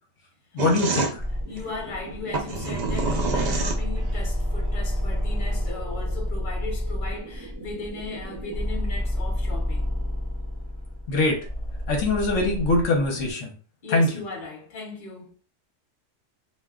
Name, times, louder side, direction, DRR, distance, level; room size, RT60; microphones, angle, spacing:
voice 1, 0.5-1.2 11.1-11.4 11.9-13.5 13.9-14.1, left 2 dB, 70° left, 1.1 m, -22 dB
sound 1, 0.6-4.2, right 4 dB, 90° right, 0.3 m, -28 dB
sound 2, 1.2-13.3, equal, 20° right, 0.6 m, -29 dB
voice 2, 1.5-9.9 13.8-15.3, left 3 dB, 45° left, 0.9 m, -37 dB
2.4 x 2.1 x 3.5 m
omnidirectional pair, 1.4 m